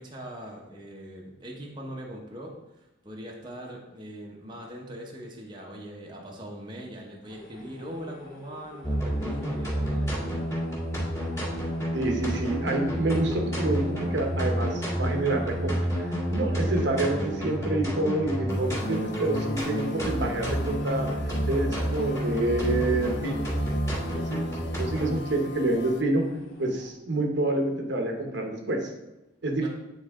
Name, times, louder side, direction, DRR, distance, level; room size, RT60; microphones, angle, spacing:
voice 1, 0.0-10.5 29.6-29.7, equal, 25° right, -2 dB, 1.0 m, -41 dB
sound 1, 7.2-26.9, left 1 dB, 85° left, 1.4 m, -48 dB
sound 2, 8.8-25.2, equal, 15° left, 2.0 m, -29 dB
voice 2, 11.9-21.1 21.5-23.4 24.1-26.2 26.6-28.9 29.4-29.7, right 2 dB, 65° right, 2 dB, 1.1 m, -28 dB
sound 3, 18.5-26.0, left 4 dB, 60° left, 0.4 m, -43 dB
8.7 x 4.1 x 3.6 m, 0.95 s
head